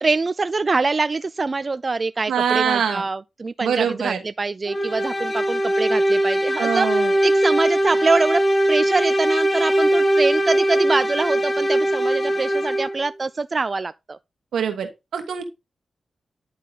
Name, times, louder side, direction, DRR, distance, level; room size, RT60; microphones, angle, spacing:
voice 1, 0.0-8.4 8.7-14.2, right 3 dB, 45° right, 0.3 m, -24 dB
voice 2, 2.3-3.0 3.6-4.2 6.6-7.1 14.5-15.4, right 7 dB, 85° right, 1.5 m, -23 dB
sound 1, 4.7-13.1, right 1 dB, 25° left, 1.6 m, -20 dB
10.0 x 3.9 x 4.0 m
supercardioid pair, 40°, 0 cm